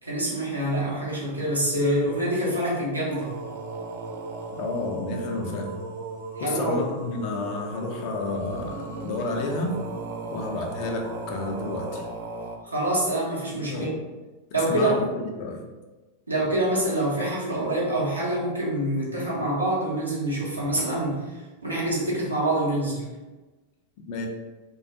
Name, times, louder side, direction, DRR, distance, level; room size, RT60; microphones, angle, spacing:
voice 1, 0.0-3.3 6.4-6.8 12.6-13.9 14.5-15.0 16.3-23.0, right 1 dB, 85° right, -6 dB, 0.7 m, -26 dB
sound 1, 3.1-12.6, right 3 dB, 55° right, 0.3 m, -36 dB
voice 2, 4.6-5.7 6.4-9.7 10.3-12.1 13.7-14.0 14.5-15.6 24.1-24.3, left 3 dB, 45° left, 2 dB, 0.4 m, -31 dB
2.3 x 2.2 x 2.7 m, 1.2 s
figure-of-eight pair, 90°, 0 cm